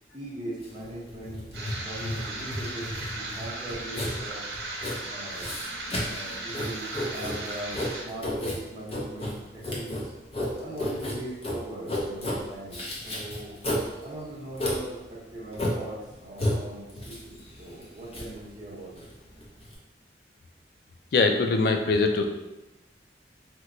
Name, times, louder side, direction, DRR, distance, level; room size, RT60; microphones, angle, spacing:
voice 1, 0.1-4.4 5.0-5.5 6.0-10.1 10.6-13.6 14.0-19.0, right 1 dB, 25° right, -6 dB, 0.8 m, -40 dB
Writing, 0.6-19.8, left 1 dB, 35° left, 0.7 m, -33 dB
sound 1, 1.5-8.0, right 2 dB, 80° right, 0.8 m, -37 dB
voice 2, 21.1-22.2, left 3 dB, 60° left, 5 dB, 0.3 m, -22 dB
3.0 x 2.2 x 3.7 m, 1.0 s
head